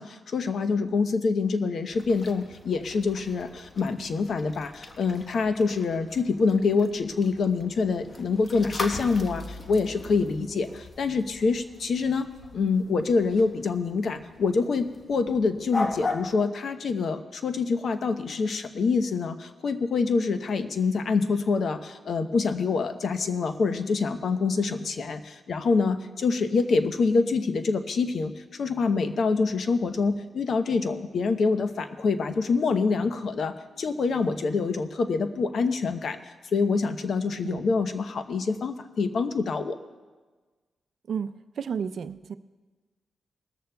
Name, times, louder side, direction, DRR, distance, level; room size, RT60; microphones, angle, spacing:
voice 1, 0.0-12.3 12.5-36.2 36.5-39.8, left 4 dB, 65° left, 8 dB, 0.8 m, -26 dB
sound 1, 1.9-16.3, left 3 dB, 45° left, 1.2 m, -39 dB
voice 2, 41.1-42.3, right 7 dB, 70° right, 12 dB, 0.5 m, -32 dB
20.0 x 14.0 x 2.3 m, 1.3 s
cardioid pair, 65°, 0 cm